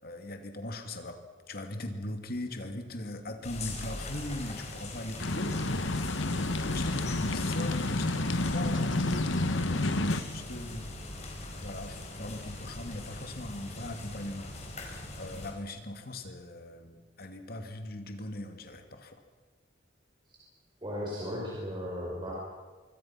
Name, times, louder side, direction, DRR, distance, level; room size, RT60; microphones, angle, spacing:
voice 1, 0.0-5.6 6.6-10.9 11.6-19.2, left 1 dB, 55° left, 6 dB, 2.5 m, -40 dB
sound 1, 3.4-15.5, left 2 dB, 35° left, 4.7 m, -41 dB
sound 2, 5.2-10.2, left 2 dB, 80° left, 1.4 m, -29 dB
voice 2, 20.8-22.3, equal, 25° right, -4 dB, 5.2 m, -36 dB
25.5 x 24.0 x 6.0 m, 1.3 s
head